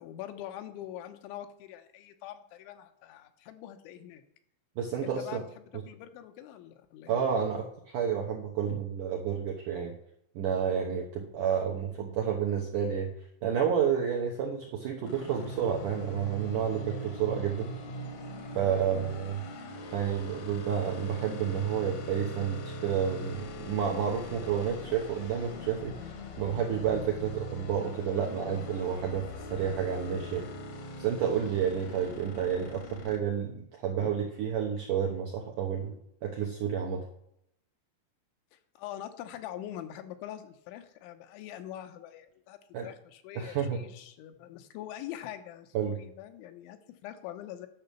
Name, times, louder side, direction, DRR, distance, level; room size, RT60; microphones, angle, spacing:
voice 1, 0.0-4.2 5.0-7.2 8.7-8.8 34.0-34.2 38.5-42.6 42.8-47.7, left 12 dB, 85° left, 8 dB, 3.3 m, -44 dB
voice 2, 4.8-5.4 7.1-7.7 7.9-9.9 10.3-13.1 13.4-17.7 18.5-19.4 19.9-26.1 26.4-30.5 31.0-35.9 36.2-37.0 42.7-42.9 43.3-43.8 45.7-46.0, right 8 dB, 80° right, 1 dB, 1.9 m, -30 dB
sound 1, 15.0-33.2, left 1 dB, 65° left, 1.8 m, -41 dB
11.0 x 6.1 x 6.9 m, 0.73 s
omnidirectional pair, 5.3 m